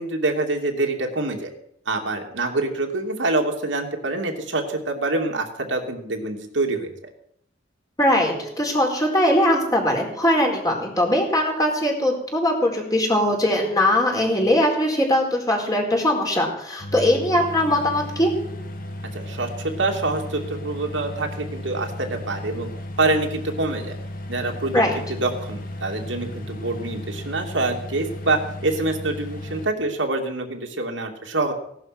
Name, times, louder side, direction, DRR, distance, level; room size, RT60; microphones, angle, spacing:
voice 1, 0.0-1.5 1.9-7.1 19.1-19.5 19.8-22.7 23.0-24.0 24.3-24.8 25.1-31.5, right 2 dB, 85° right, 2 dB, 2.8 m, -26 dB
voice 2, 8.0-18.3 24.7-25.0, left 1 dB, 20° left, 0 dB, 4.3 m, -21 dB
sound 1, 16.8-29.7, left 1 dB, 50° left, 1.8 m, -35 dB
18.0 x 12.0 x 6.0 m, 0.73 s
head